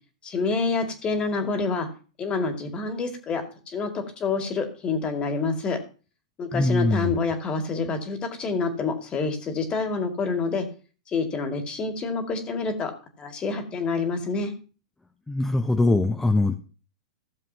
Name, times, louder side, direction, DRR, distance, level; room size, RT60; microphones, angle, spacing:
voice 1, 0.2-1.9 2.2-5.8 6.4-10.7 11.1-12.9 13.2-14.5, left 4 dB, 25° left, 5 dB, 2.2 m, -27 dB
voice 2, 6.5-7.2 15.3-16.5, left 2 dB, 10° left, 4 dB, 0.9 m, -22 dB
15.5 x 7.2 x 2.9 m, 0.37 s
hypercardioid pair, 105°, 4 cm